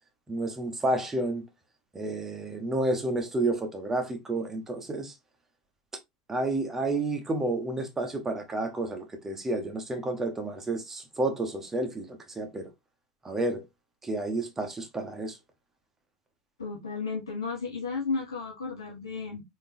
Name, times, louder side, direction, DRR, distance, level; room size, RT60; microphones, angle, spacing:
voice 1, 0.3-1.5 1.9-5.1 6.3-12.7 13.2-13.6 14.0-15.4, right 2 dB, 15° right, 1.1 m, -30 dB
voice 2, 16.6-19.4, left 4 dB, 85° left, 1.0 m, -33 dB
3.6 x 2.9 x 2.6 m
hypercardioid pair, 85°, 2 cm